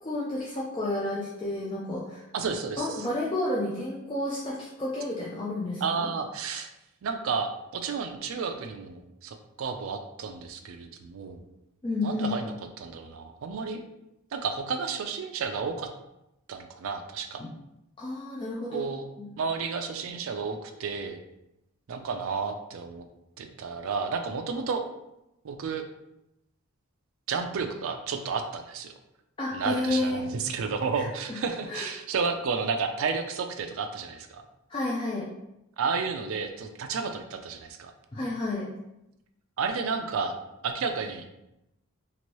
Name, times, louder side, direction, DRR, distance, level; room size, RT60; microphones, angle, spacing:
voice 1, 0.0-2.2 2.8-6.1 11.8-12.3 17.4-17.5 18.0-18.8 19.2-19.3 29.4-30.2 30.9-31.1 31.7-31.9 34.7-35.3 38.1-38.7, left 2 dB, 20° left, -5 dB, 0.4 m, -31 dB
voice 2, 2.3-2.9 5.8-6.7 7.0-11.4 12.0-13.8 14.3-15.9 16.5-17.4 18.7-19.0 19.4-21.2 21.9-23.1 23.4-24.8 25.4-25.8 27.3-28.9 29.5-34.4 35.8-37.9 39.6-40.3 40.6-41.3, right 5 dB, 65° right, 6 dB, 0.4 m, -31 dB
2.9 x 2.6 x 3.0 m, 0.88 s
head